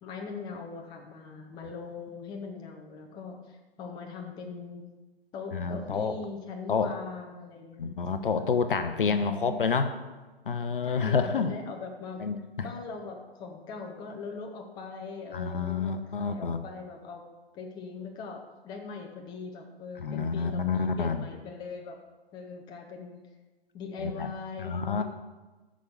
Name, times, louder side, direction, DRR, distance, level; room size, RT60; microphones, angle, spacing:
voice 1, 0.0-4.8 5.3-7.9 9.0-9.6 10.8-12.2 12.6-17.2 17.5-22.0 22.3-23.2 23.7-25.0, left 4 dB, 15° left, 2 dB, 0.8 m, -41 dB
voice 2, 5.5-6.2 6.7-6.9 7.8-9.9 10.5-11.5 12.2-12.4 15.3-16.6 20.0-21.2 24.0-24.3 24.6-25.0, left 5 dB, 60° left, 9 dB, 0.9 m, -28 dB
7.9 x 6.3 x 6.9 m, 1.2 s
figure-of-eight pair, 125°, 31 cm